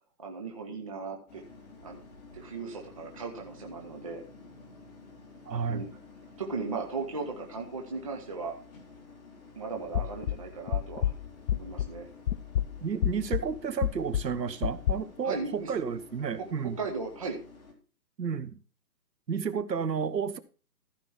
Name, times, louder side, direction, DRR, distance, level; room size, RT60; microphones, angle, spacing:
voice 1, 0.2-1.4 1.8-2.0 2.3-4.2 5.7-5.9 6.4-8.5 9.5-11.1 11.5-12.1 15.2-15.7 16.4-17.4, right 4 dB, 20° right, 0.8 m, -37 dB
sound 1, 1.3-17.7, left 4 dB, 25° left, 2.2 m, -52 dB
voice 2, 5.5-5.9 12.8-16.8 18.2-18.6 19.3-20.4, right 6 dB, 75° right, 1.4 m, -31 dB
sound 2, 9.9-12.0 12.3-14.9, left 11 dB, 70° left, 0.6 m, -30 dB
14.5 x 5.1 x 5.7 m
hypercardioid pair, 165°, 50 cm